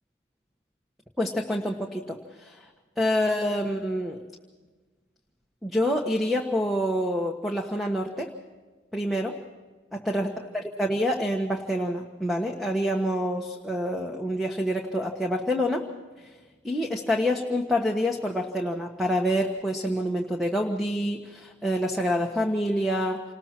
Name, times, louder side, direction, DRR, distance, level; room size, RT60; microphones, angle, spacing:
voice 1, 1.2-2.7 3.0-4.2 5.6-8.3 8.9-9.3 10.1-10.3 10.5-15.9 16.2-16.3 16.6-23.2, equal, ahead, 1 dB, 1.3 m, -27 dB
28.5 x 20.0 x 4.5 m, 1.3 s
head